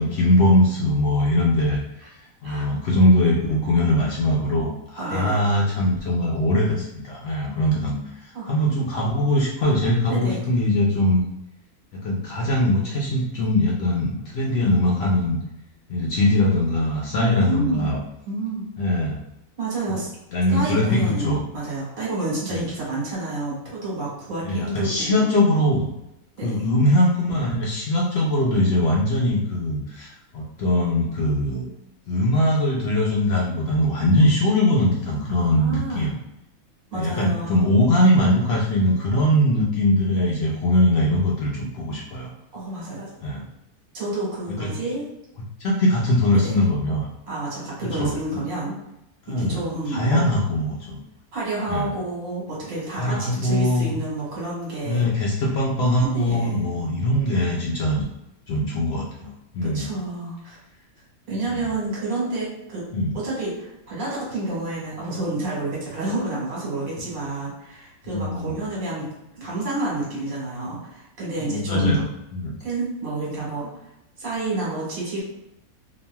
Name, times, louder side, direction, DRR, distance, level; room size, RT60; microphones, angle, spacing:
voice 1, 0.0-1.8 2.2-11.2 11.9-15.4 15.9-18.0 18.8-19.2 20.3-21.4 22.5-22.6 24.4-25.9 26.4-31.7 32.1-36.1 36.9-42.3 43.2-43.4 44.6-44.7 45.4-47.1 48.0-48.4 49.3-49.6 49.9-51.0 51.7-51.9 53.0-53.9 54.9-58.0 58.5-59.9 61.5-61.6 62.9-63.1 68.1-68.6 71.4-72.0 72.3-72.5, left 1 dB, 75° left, -3 dB, 0.5 m, -21 dB
voice 2, 5.0-5.4 8.3-8.5 10.1-10.4 17.2-17.9 18.2-18.7 19.6-20.1 20.5-25.3 26.4-26.6 35.4-36.1 36.9-37.7 42.5-43.1 43.9-45.1 46.3-46.6 47.3-48.8 49.3-50.2 51.3-55.0 56.1-56.6 59.6-60.6 61.3-62.8 63.1-72.0 72.6-73.7 74.2-75.2, right 2 dB, 65° right, -6 dB, 1.6 m, -29 dB
2.9 x 2.5 x 2.2 m, 0.85 s
omnidirectional pair, 1.6 m